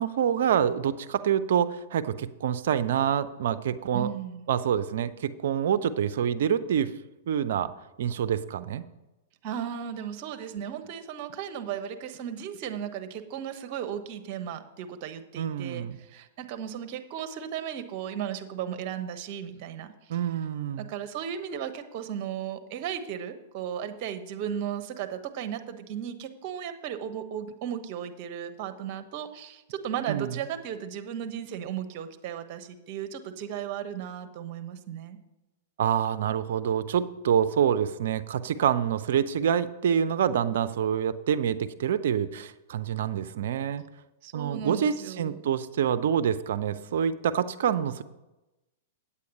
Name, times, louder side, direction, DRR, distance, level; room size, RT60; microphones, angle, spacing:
voice 1, 0.0-4.1 4.5-6.9 7.3-7.7 8.0-8.8 15.4-16.0 20.1-20.9 30.1-30.4 35.8-43.8 44.3-48.0, right 8 dB, 65° right, 13 dB, 0.6 m, -26 dB
voice 2, 3.9-4.4 9.4-19.9 20.8-35.2 44.2-45.4, right 9 dB, 45° right, 9 dB, 1.1 m, -35 dB
8.6 x 8.4 x 5.4 m, 1.0 s
hypercardioid pair, 110°, 0 cm